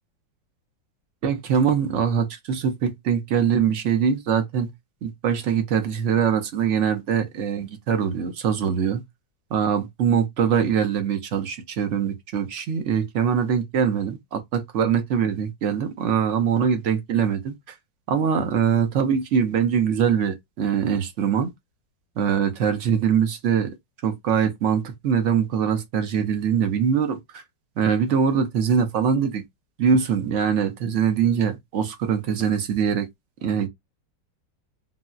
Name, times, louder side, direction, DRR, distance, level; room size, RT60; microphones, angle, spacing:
voice 1, 1.2-4.7 5.0-9.0 9.5-17.5 18.1-21.5 22.2-23.7 24.0-27.4 27.8-29.4 29.8-33.1 33.4-33.7, right 7 dB, 65° right, 0.7 m, -23 dB
3.9 x 2.0 x 2.3 m
omnidirectional pair, 2.1 m